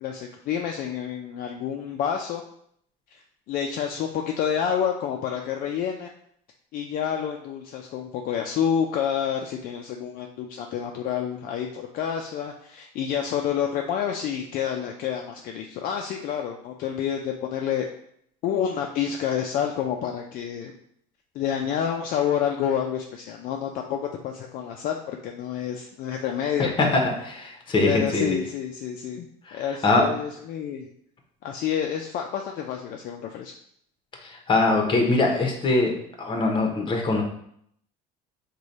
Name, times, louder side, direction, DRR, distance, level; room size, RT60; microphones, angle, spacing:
voice 1, 0.0-2.4 3.1-3.2 3.5-6.1 6.7-17.9 18.4-20.7 21.3-24.0 24.2-27.0 27.9-30.9 31.4-33.5, left 8 dB, 50° left, 2 dB, 0.4 m, -28 dB
voice 2, 26.6-28.4 29.5-30.1 34.2-37.2, left 2 dB, 25° left, 2 dB, 0.8 m, -23 dB
4.8 x 2.3 x 4.0 m, 0.69 s
cardioid pair, 145°, 18 cm